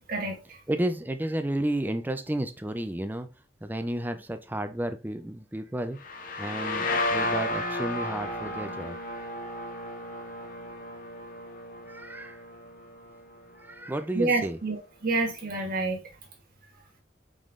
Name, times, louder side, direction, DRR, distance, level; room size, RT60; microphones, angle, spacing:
voice 1, 0.1-0.6 14.1-16.0, right 3 dB, 55° right, 1.7 m, -28 dB
voice 2, 0.7-3.3 3.6-6.0 6.4-9.0 9.5-9.6 11.9-12.4 13.6-14.6, right 1 dB, 10° right, 0.5 m, -32 dB
sound 1, 6.0-13.5, left 1 dB, 50° left, 0.8 m, -33 dB
5.1 x 3.7 x 2.5 m
head